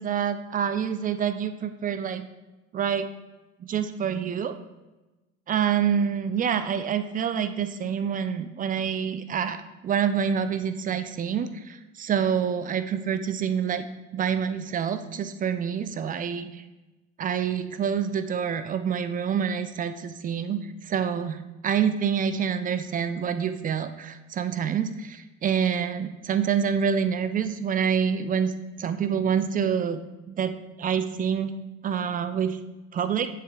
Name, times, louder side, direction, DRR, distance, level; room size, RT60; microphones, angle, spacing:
voice 1, 0.0-2.3 2.7-3.1 3.6-4.5 5.5-13.9 14.1-16.6 17.2-28.5 28.8-30.0 30.3-31.5 31.8-32.6 32.9-33.3, right 7 dB, 25° right, 10 dB, 0.4 m, -27 dB
7.5 x 6.8 x 2.3 m, 1.1 s
hypercardioid pair, 65°, 38 cm